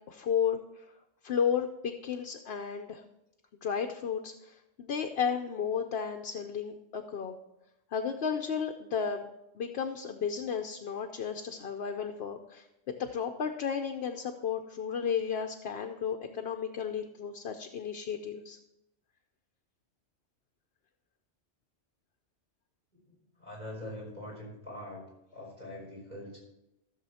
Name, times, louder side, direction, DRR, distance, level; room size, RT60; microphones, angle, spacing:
voice 1, 0.1-0.6 1.2-3.0 3.6-7.3 7.9-9.3 9.6-18.6, left 7 dB, 60° left, 4 dB, 0.9 m, -33 dB
voice 2, 23.1-25.0 25.3-26.4, left 1 dB, 40° right, -2 dB, 4.9 m, -43 dB
14.0 x 6.9 x 4.2 m, 0.90 s
omnidirectional pair, 1.3 m